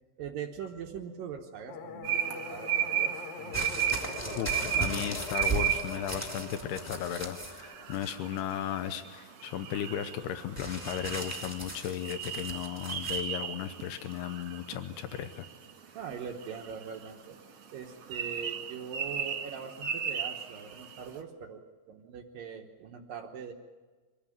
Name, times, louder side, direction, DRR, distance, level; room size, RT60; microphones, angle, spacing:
voice 1, 0.2-5.1 15.9-17.4 17.7-23.5, right 7 dB, 85° right, 3 dB, 1.9 m, -42 dB
sound 1, 1.7-8.6, left 5 dB, 60° left, 2.7 m, -44 dB
sound 2, 2.0-21.1, right 9 dB, 50° right, 1.8 m, -35 dB
sound 3, 3.5-7.6 7.9-8.5 10.6-13.2 14.1-14.2, right 2 dB, 20° left, 0.4 m, -38 dB
voice 2, 4.4-15.5, left 10 dB, 85° left, 10 dB, 2.3 m, -35 dB
25.0 x 17.0 x 9.2 m, 1.4 s
omnidirectional pair, 5.8 m